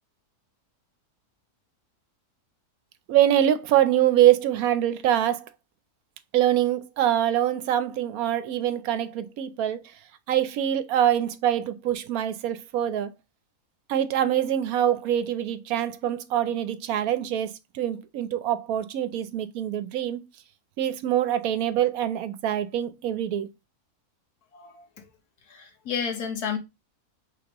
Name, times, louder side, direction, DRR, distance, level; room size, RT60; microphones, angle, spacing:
voice 1, 3.1-5.5 6.3-9.8 10.3-13.1 13.9-20.2 20.8-23.5, right 11 dB, 75° right, 1.0 m, -24 dB
voice 2, 24.5-24.8 25.5-26.6, left 7 dB, 80° left, 1.6 m, -31 dB
5.1 x 3.5 x 2.9 m
omnidirectional pair, 1.6 m